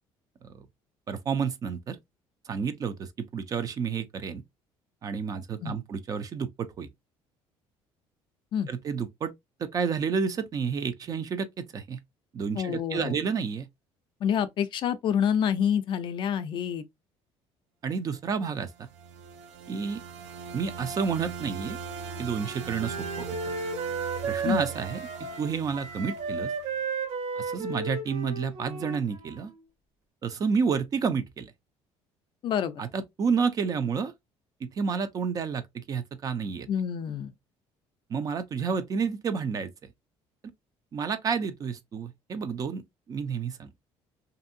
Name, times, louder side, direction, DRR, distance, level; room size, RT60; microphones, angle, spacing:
voice 1, 1.1-2.0 2.5-4.4 5.0-6.9 8.7-9.3 9.6-12.0 12.3-13.7 17.8-18.9 19.7-20.0 20.5-21.8 22.2-23.3 24.2-25.0 25.4-26.5 27.4-29.5 30.2-31.5 32.8-34.1 34.6-36.7 38.1-39.7 40.9-42.8 43.1-43.7, right 6 dB, 35° right, 0.4 m, -30 dB
voice 2, 12.6-13.2 14.2-16.8 24.4-24.7 32.4-32.8 36.7-37.3, left 8 dB, 45° left, 0.4 m, -27 dB
sound 1, 18.6-26.8, right 6 dB, 80° right, 0.6 m, -40 dB
Wind instrument woodwind instrument, 21.8-29.6, right 4 dB, 65° right, 1.2 m, -34 dB
2.6 x 2.6 x 2.5 m
cardioid pair, 145°, 11 cm